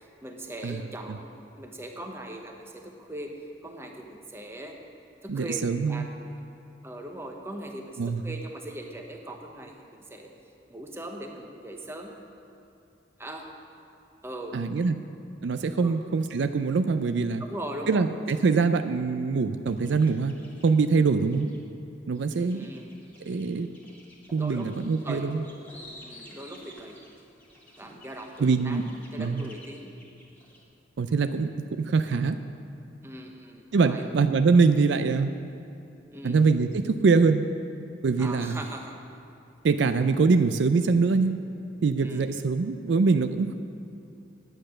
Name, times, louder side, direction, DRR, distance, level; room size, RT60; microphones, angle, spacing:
voice 1, 0.2-1.3 1.6-3.3 3.6-4.8 5.2-6.1 6.8-10.3 10.7-12.1 13.2-13.5 14.2-14.5 15.8-16.0 17.4-18.1 22.5-23.0 23.2-23.4 24.4-24.7 25.0-25.3 26.0-27.0 27.8-28.8 29.1-29.9 33.0-34.1 36.1-36.4 38.2-38.9 42.0-42.3, right 1 dB, 15° right, 2 dB, 0.9 m, -40 dB
voice 2, 5.3-6.1 8.0-8.4 14.5-15.0 15.4-17.4 17.9-20.3 20.6-21.5 22.1-22.7 23.3-23.7 24.3-25.4 28.4-28.8 29.2-29.5 31.0-32.4 33.7-35.3 36.2-37.4 38.0-38.6 39.6-41.4 41.8-43.5, right 4 dB, 70° right, 9 dB, 0.4 m, -23 dB
sound 1, 19.7-21.6 22.2-30.6, equal, 10° left, 1.8 m, -51 dB
10.0 x 8.8 x 6.3 m, 2.8 s
head